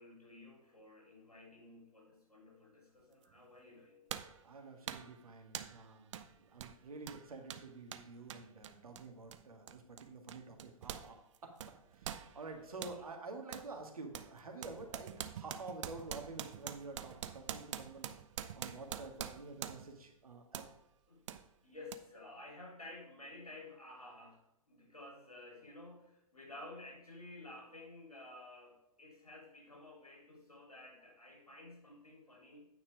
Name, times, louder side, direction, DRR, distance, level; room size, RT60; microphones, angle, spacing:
voice 1, 0.0-4.0 12.6-12.8 21.1-21.3 21.6-32.6, left 2 dB, 90° left, 0 dB, 3.5 m, -53 dB
sound 1, 3.2-3.4 4.1-4.4 4.9-5.1 5.5-5.8 6.1-6.3 6.6-11.1 11.3-13.0 13.5-13.7 14.1-20.0 20.5-20.7 21.3-21.4 21.9-22.0, right 10 dB, 55° right, 0.7 m, -45 dB
voice 2, 4.4-11.2 11.4-11.5 11.9-18.1 18.5-20.6, right 3 dB, 75° right, 4 dB, 1.9 m, -49 dB
9.2 x 5.9 x 4.8 m, 0.87 s
figure-of-eight pair, 110°, 19 cm